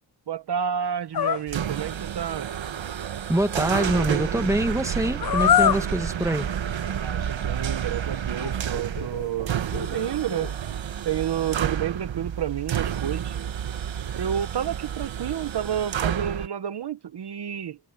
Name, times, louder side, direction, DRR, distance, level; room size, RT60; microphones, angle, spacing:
voice 1, 0.3-2.5 7.0-9.5 9.9-10.6 11.0-13.4 14.2-17.8, right 9 dB, 60° right, 0.8 m, -30 dB
sound 1, 1.1-1.4 5.2-5.9 7.2-7.3 8.4-9.3 9.7-10.5, left 9 dB, 50° left, 0.6 m, -24 dB
sound 2, 1.5-16.5, right 9 dB, 80° right, 1.2 m, -30 dB
voice 2, 3.3-6.5, right 1 dB, 5° right, 1.6 m, -25 dB
wide cardioid pair, 170°, 45 cm